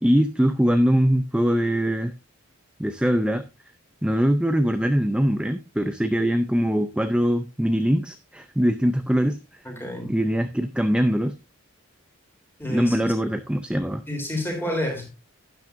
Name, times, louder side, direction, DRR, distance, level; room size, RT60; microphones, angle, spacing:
voice 1, 0.0-2.1 2.8-3.4 4.0-9.4 10.1-11.3 12.7-14.0, equal, 5° right, 0.5 m, -22 dB
voice 2, 9.6-10.2 12.6-13.0 14.1-15.1, left 1 dB, 10° left, 3.4 m, -29 dB
12.0 x 10.5 x 2.6 m
head